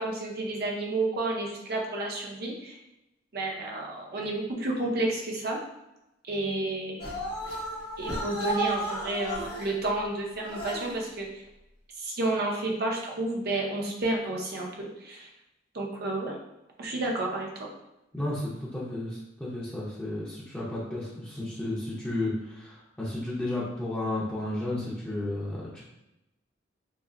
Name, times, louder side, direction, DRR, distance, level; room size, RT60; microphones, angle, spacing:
voice 1, 0.0-2.8 3.3-5.6 6.3-7.2 8.0-11.4 12.0-15.3 15.7-16.4 16.8-17.7, right 2 dB, 55° right, -1 dB, 0.7 m, -31 dB
sound 1, 7.0-9.7 10.4-11.0, equal, 60° left, 1.2 m, -33 dB
voice 2, 18.1-25.8, left 1 dB, 5° left, -9 dB, 0.7 m, -33 dB
5.3 x 2.0 x 2.5 m, 0.93 s
head